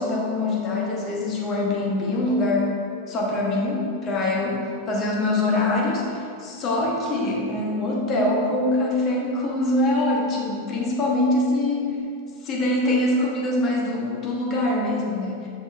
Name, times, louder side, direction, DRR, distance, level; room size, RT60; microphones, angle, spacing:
voice 1, 0.0-2.8 3.1-12.0 12.4-15.5, left 2 dB, 30° left, -3 dB, 1.1 m, -24 dB
6.2 x 6.0 x 2.5 m, 2.3 s
figure-of-eight pair, 90°, 0 cm